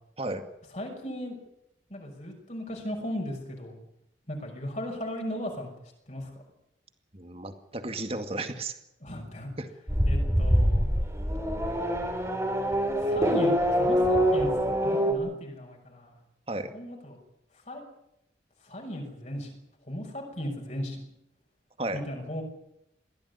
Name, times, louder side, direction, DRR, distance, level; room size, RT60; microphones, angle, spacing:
voice 1, 0.7-1.4 1.9-3.8 4.3-5.7 6.1-6.3 9.0-9.5 10.1-10.9 13.0-14.5 14.8-16.2 16.7-17.2 17.7-17.8 18.6-19.5 19.8-21.0 21.9-22.4, equal, 40° left, 0 dB, 6.0 m, -36 dB
voice 2, 7.1-8.8 9.6-9.7 16.5-16.7 21.8-22.0, right 2 dB, 30° right, 8 dB, 2.1 m, -33 dB
Race car auto racing / Accelerating revving vroom, 9.9-15.1, equal, 15° right, 3.7 m, -25 dB
22.0 x 16.0 x 9.8 m, 0.81 s
head